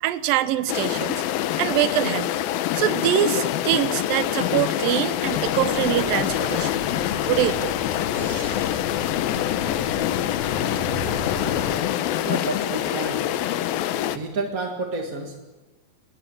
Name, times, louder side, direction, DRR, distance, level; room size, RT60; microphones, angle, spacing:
voice 1, 0.0-1.2 1.6-2.3 2.7-6.7 7.3-7.8 8.1-8.7, right 12 dB, 75° right, 13 dB, 2.7 m, -24 dB
sound 1, 0.7-14.2, left 12 dB, 85° left, 2.8 m, -25 dB
sound 2, 5.2-11.8, left 5 dB, 70° left, 3.3 m, -32 dB
voice 2, 12.2-13.3 14.0-15.4, right 3 dB, 35° right, 3 dB, 1.5 m, -30 dB
22.0 x 20.5 x 9.8 m, 1.1 s
omnidirectional pair, 4.1 m